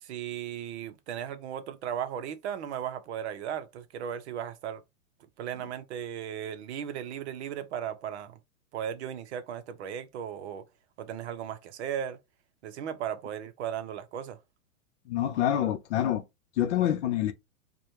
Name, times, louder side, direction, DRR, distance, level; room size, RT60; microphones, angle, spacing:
voice 1, 0.0-4.8 5.4-8.4 8.7-10.6 11.0-12.2 12.6-14.4, right 9 dB, 50° right, 0.7 m, -36 dB
voice 2, 15.1-16.2 16.6-17.3, left 11 dB, 55° left, 0.7 m, -26 dB
4.8 x 2.3 x 2.8 m
hypercardioid pair, 150°, 43 cm